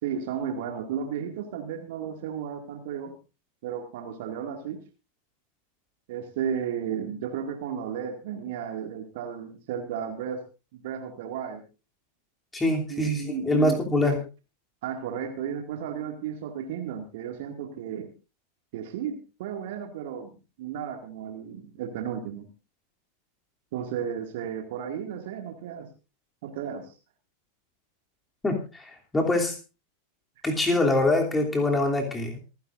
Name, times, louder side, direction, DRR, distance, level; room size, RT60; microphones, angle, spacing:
voice 1, 0.0-3.1 3.6-4.8 6.1-10.4 10.7-11.6 12.9-14.1 14.8-18.1 18.7-20.3 20.6-22.4 23.7-25.9 26.4-26.9, right 8 dB, 50° right, 4 dB, 2.2 m, -34 dB
voice 2, 12.5-14.1 28.4-29.5 30.4-32.3, left 2 dB, 10° left, 2 dB, 3.0 m, -24 dB
26.5 x 10.5 x 2.6 m, 0.32 s
figure-of-eight pair, 90°, 0 cm